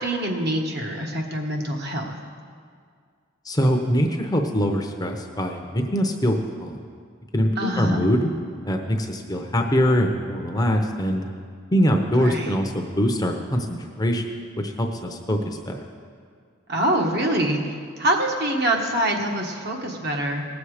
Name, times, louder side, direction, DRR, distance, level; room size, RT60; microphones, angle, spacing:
voice 1, 0.0-2.1 7.6-8.0 12.2-12.5 16.7-20.4, right 1 dB, 50° right, 1 dB, 1.4 m, -25 dB
voice 2, 3.4-6.8 7.3-8.3 8.6-11.2 11.7-14.3 14.6-15.8, equal, 20° left, 3 dB, 0.7 m, -23 dB
18.5 x 7.2 x 4.9 m, 2.1 s
head